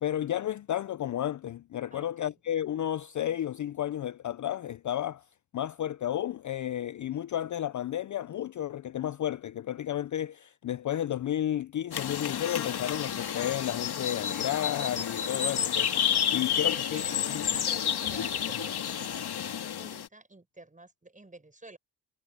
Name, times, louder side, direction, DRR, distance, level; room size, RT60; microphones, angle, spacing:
voice 1, 0.0-5.2 5.5-17.0 17.3-17.5, left 11 dB, 45° left, 0.5 m, -32 dB
voice 2, 1.9-2.4 16.3-21.8, right 2 dB, 15° right, 5.6 m, -49 dB
sound 1, 11.9-20.1, left 9 dB, 60° left, 1.9 m, -30 dB
cardioid pair, 90°, 45 cm